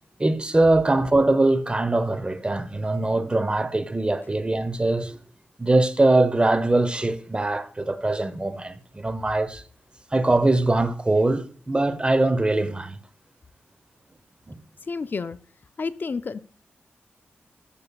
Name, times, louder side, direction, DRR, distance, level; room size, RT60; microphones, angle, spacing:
voice 1, 0.2-5.2 5.6-9.6 10.1-13.0 14.5-14.6, right 2 dB, 25° right, 0.8 m, -22 dB
voice 2, 14.9-15.4 15.8-16.4, left 4 dB, 50° left, 0.4 m, -30 dB
12.5 x 6.8 x 2.3 m
cardioid pair, 50°, 4 cm